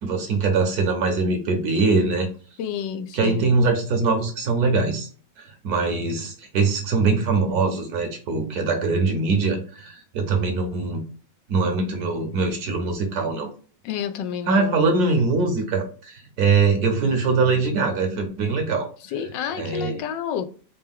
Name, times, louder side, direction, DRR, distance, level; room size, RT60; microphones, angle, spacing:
voice 1, 0.0-2.3 3.1-5.1 5.4-11.1 11.5-13.5 14.5-18.9 19.6-20.0, right 4 dB, 65° right, 1.2 m, -22 dB
voice 2, 2.6-3.5 13.8-14.8 19.1-20.5, left 8 dB, 85° left, 1.3 m, -30 dB
4.3 x 2.2 x 3.5 m
omnidirectional pair, 1.9 m